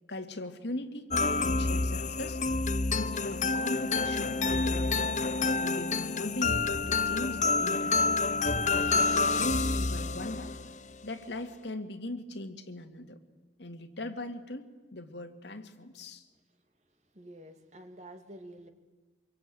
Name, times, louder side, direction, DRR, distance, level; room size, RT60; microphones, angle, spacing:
voice 1, 0.1-1.1 1.4-2.4 2.9-5.1 5.5-8.2 8.7-10.6 11.0-13.2 13.6-16.3, left 1 dB, 75° left, 6 dB, 2.3 m, -40 dB
sound 1, 1.1-10.8, left 3 dB, 40° left, 0.9 m, -28 dB
voice 2, 17.1-18.7, right 1 dB, 40° right, 6 dB, 2.4 m, -48 dB
26.0 x 23.0 x 9.3 m, 1.3 s
head